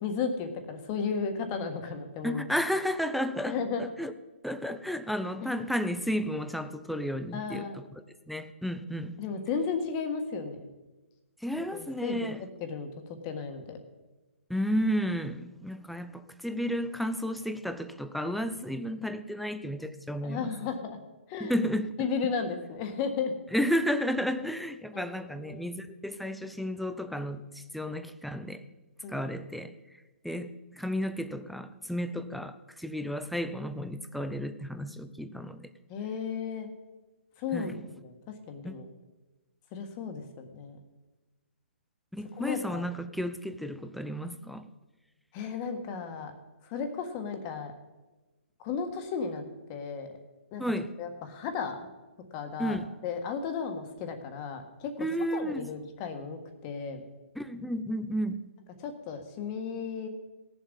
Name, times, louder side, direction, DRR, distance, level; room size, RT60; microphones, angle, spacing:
voice 1, 0.0-2.4 3.4-3.8 5.4-5.5 7.3-7.8 9.2-10.7 11.7-13.8 20.2-21.0 21.3-21.6 22.0-23.4 24.9-25.7 29.0-29.2 35.9-36.7 37.4-38.9 39.7-40.8 42.3-42.9 45.3-46.3 46.6-47.7 48.6-49.4 49.7-50.1 50.5-50.6 51.0-51.8 52.3-57.0 58.8-60.1, left 5 dB, 25° left, 6 dB, 1.6 m, -34 dB
voice 2, 2.2-4.1 4.4-7.7 8.3-9.2 11.4-12.4 14.5-20.5 21.4-21.9 23.5-28.6 29.1-29.7 30.2-35.7 37.5-37.8 38.6-38.7 42.1-44.7 50.6-50.9 52.6-52.9 55.0-55.7 57.4-58.4, equal, ahead, 10 dB, 0.4 m, -32 dB
18.0 x 7.2 x 5.4 m, 1.1 s
hypercardioid pair, 155°, 7 cm